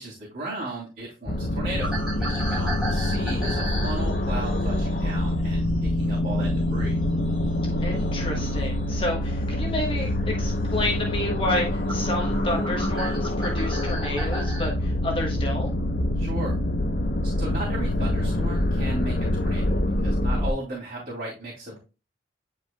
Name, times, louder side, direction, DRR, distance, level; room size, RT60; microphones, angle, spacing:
voice 1, 0.0-1.9 2.2-7.0 16.1-16.6 17.2-21.8, right 1 dB, 45° right, -5 dB, 2.8 m, -36 dB
sound 1, 1.3-20.5, left 1 dB, 55° left, 0.8 m, -25 dB
sound 2, 1.8-6.6 6.9-9.0 9.5-9.9 10.4-10.5 11.1-11.2 11.4-14.7, right 1 dB, 5° right, 3.7 m, -36 dB
voice 2, 7.8-15.7, left 1 dB, 30° left, -1 dB, 1.3 m, -30 dB
9.7 x 4.8 x 2.3 m, 0.30 s
head